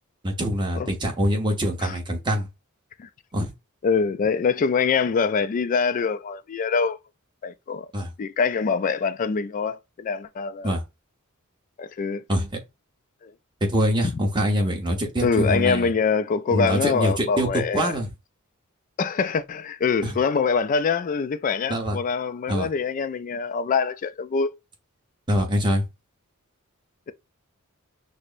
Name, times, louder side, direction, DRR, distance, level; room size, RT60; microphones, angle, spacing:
voice 1, 0.2-2.5 3.3-3.5 7.9-8.1 10.6-10.8 12.3-12.5 13.7-15.9 16.5-18.1 20.0-20.2 21.7-22.0 22.5-22.7 25.3-25.8, equal, 20° right, 0.9 m, -24 dB
voice 2, 3.8-7.0 7.4-7.9 8.2-10.7 11.8-12.2 13.2-13.3 15.2-17.9 19.0-24.5, left 5 dB, 35° left, 0.3 m, -24 dB
6.0 x 2.1 x 2.5 m
head